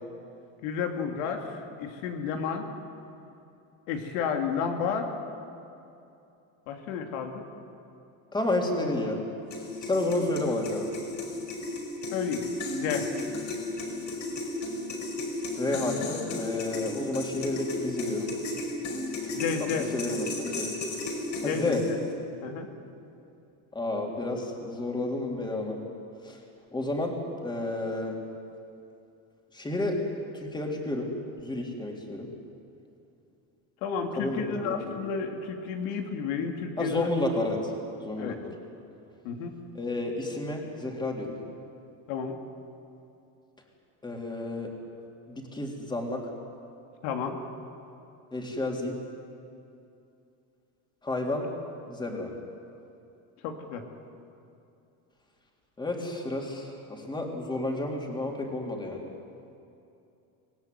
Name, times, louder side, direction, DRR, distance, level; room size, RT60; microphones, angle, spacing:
voice 1, 0.6-2.7 3.9-5.1 6.7-7.4 12.1-12.4 12.7-13.1 19.3-19.9 21.4-21.8 22.4-22.7 33.8-37.1 38.2-38.4 39.2-39.5 42.1-42.3 47.0-47.4 53.4-53.8, left 6 dB, 90° left, 3 dB, 2.8 m, -31 dB
voice 2, 8.3-9.2 9.8-10.9 15.6-18.3 19.9-20.7 21.4-21.8 23.7-25.8 26.2-26.4 26.7-27.2 27.4-28.2 29.5-30.0 30.3-32.3 34.2-34.9 36.8-37.7 38.0-38.5 39.7-41.4 44.0-44.7 45.3-46.3 48.3-49.0 51.0-51.5 51.9-52.3 55.8-59.0, left 2 dB, 10° left, 0 dB, 3.7 m, -31 dB
sound 1, 9.5-22.1, left 2 dB, 45° left, 5.4 m, -34 dB
26.0 x 18.0 x 9.6 m, 2.7 s
cardioid pair, 145°, 41 cm